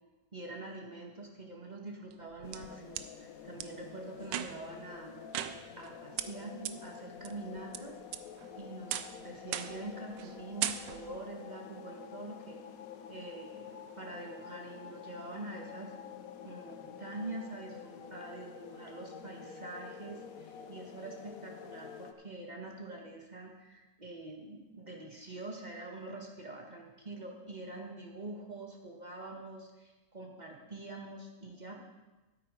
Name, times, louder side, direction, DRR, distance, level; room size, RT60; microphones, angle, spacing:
voice 1, 0.3-5.2 5.8-8.0 8.5-12.6 13.1-15.9 16.4-31.8, right 2 dB, 25° right, 0 dB, 1.5 m, -45 dB
sound 1, 2.1-3.1 3.6-3.7 4.2-4.8 5.3-5.9 6.2-6.3 6.7-6.8 7.2-7.8 8.1-8.5 8.9-9.2 9.5-9.9 10.2-10.3 10.6-11.2, right 11 dB, 85° right, 1.3 m, -37 dB
sound 2, 2.4-22.1, left 7 dB, 60° left, 1.1 m, -48 dB
12.5 x 8.9 x 5.2 m, 1.1 s
omnidirectional pair, 1.9 m